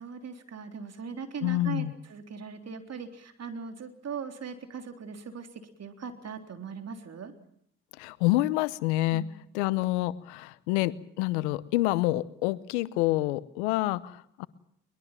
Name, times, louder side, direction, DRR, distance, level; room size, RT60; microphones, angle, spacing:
voice 1, 0.0-5.5 5.8-7.3 9.1-9.3, right 6 dB, 50° right, 6 dB, 3.7 m, -39 dB
voice 2, 1.4-1.9 8.0-9.2 9.5-14.5, left 17 dB, 90° left, 18 dB, 0.9 m, -27 dB
22.5 x 21.5 x 7.5 m, 0.68 s
hypercardioid pair, 55°, 34 cm